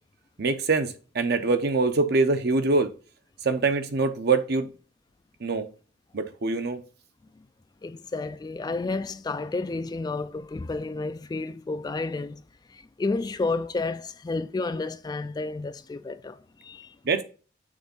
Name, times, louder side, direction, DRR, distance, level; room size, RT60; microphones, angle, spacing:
voice 1, 0.4-2.9 3.4-4.7 5.4-5.7 6.1-6.8 17.0-17.2, right 3 dB, 60° right, 0.8 m, -24 dB
voice 2, 7.8-12.4 12.7-17.0, left 3 dB, 20° left, 0.3 m, -31 dB
6.5 x 3.4 x 5.4 m
head